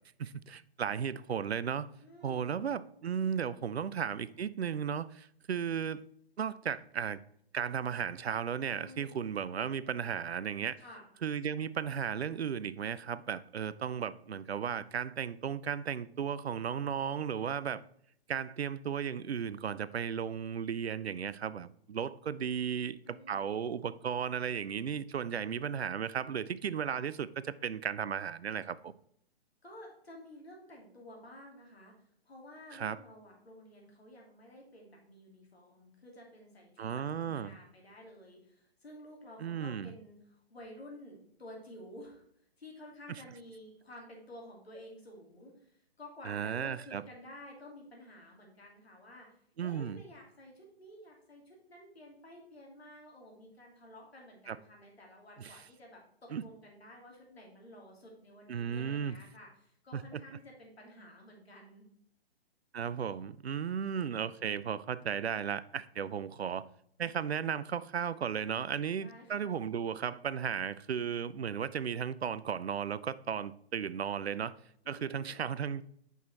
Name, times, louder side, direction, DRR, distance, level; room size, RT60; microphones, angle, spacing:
voice 1, 0.2-1.9 2.2-6.0 6.4-7.2 7.5-10.8 11.2-17.8 18.3-28.9 32.7-33.0 36.8-37.5 39.4-39.9 46.2-47.0 49.6-50.0 54.5-54.6 55.4-55.5 56.3-56.4 58.5-59.2 59.9-60.2 62.7-66.7 67.0-74.6 74.9-75.8, right 7 dB, 75° right, 0.5 m, -35 dB
voice 2, 2.0-2.6 8.8-9.2 10.8-11.1 23.0-23.6 25.1-25.6 29.6-31.9 32.2-42.2 42.6-45.5 46.0-61.9 69.0-69.5 74.8-75.4, left 1 dB, 70° left, 2.7 m, -52 dB
6.3 x 5.4 x 4.2 m
figure-of-eight pair, 130°, 32 cm